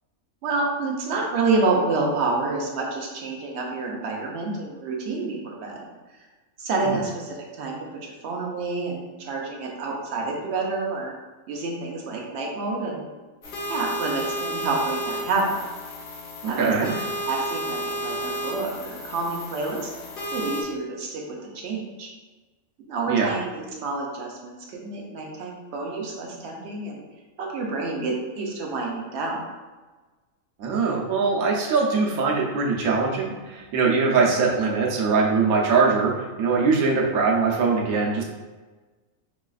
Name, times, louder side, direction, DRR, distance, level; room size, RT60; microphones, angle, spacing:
voice 1, 0.4-5.8 6.6-11.1 11.5-13.1 13.7-15.6 16.5-19.9 20.3-21.2 21.5-22.1 22.9-27.0 27.4-29.4, right 3 dB, 60° right, -1 dB, 0.9 m, -28 dB
sound 1, 13.4-20.6, equal, 45° left, 0.9 m, -32 dB
voice 2, 16.4-16.9 23.1-23.3 30.6-38.2, right 4 dB, 90° right, -2 dB, 1.1 m, -22 dB
4.9 x 2.3 x 2.4 m, 1.3 s
omnidirectional pair, 1.5 m